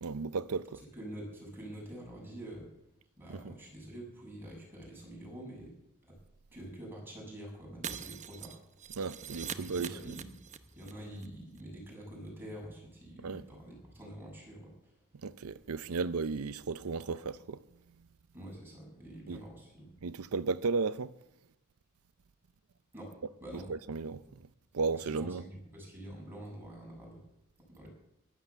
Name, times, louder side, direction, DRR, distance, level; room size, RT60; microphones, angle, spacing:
voice 1, 0.0-0.8 3.3-3.5 8.9-10.1 13.2-13.4 15.2-17.6 19.3-19.4 20.0-21.1 23.7-24.2 24.7-25.5, right 4 dB, 85° right, 0.6 m, -34 dB
voice 2, 0.9-2.7 3.2-5.7 6.0-6.2 6.5-8.6 9.5-10.4 10.7-15.0 18.3-19.9 22.9-23.1 23.4-23.7 25.0-27.2 27.7-27.9, right 1 dB, 10° right, 6.9 m, -46 dB
Shatter, 7.8-10.9 11.2-11.3 11.6-11.7, right 7 dB, 35° right, 0.8 m, -43 dB
14.5 x 12.0 x 7.0 m
head